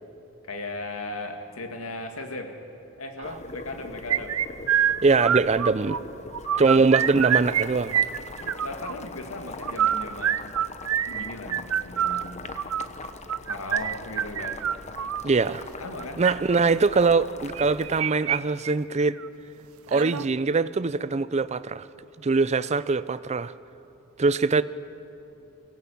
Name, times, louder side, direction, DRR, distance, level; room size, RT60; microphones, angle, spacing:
voice 1, 0.4-2.6 3.0-4.4 6.5-6.7 8.4-10.6 11.1-12.4 13.5-14.6 15.8-16.2, left 2 dB, 85° left, 2.1 m, -37 dB
Boiling, 3.2-18.0, left 3 dB, 35° left, 1.0 m, -42 dB
sound 1, 4.1-6.0 6.3-7.6 7.9-8.9 9.6-15.2 16.0-16.3 17.5-18.4 18.6-18.7 19.2-19.3 19.9-20.3, right 9 dB, 80° right, 0.5 m, -26 dB
voice 2, 5.0-6.0 6.6-8.0 15.2-15.6 16.2-19.2 19.9-21.9 22.2-23.5 24.2-24.6, right 4 dB, 30° right, 0.5 m, -22 dB
24.0 x 16.5 x 8.6 m
head